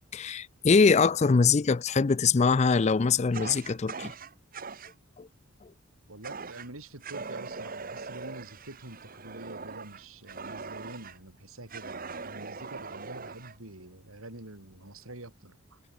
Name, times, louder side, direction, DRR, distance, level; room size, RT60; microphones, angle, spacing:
voice 1, 0.1-4.1 5.2-5.3, left 5 dB, 30° left, 0.4 m, -23 dB
Fire, 3.3-4.9 6.2-6.7 7.0-11.2 11.7-13.6, right 4 dB, 45° right, 1.3 m, -41 dB
voice 2, 6.1-15.8, right 2 dB, 85° right, 4.7 m, -46 dB
head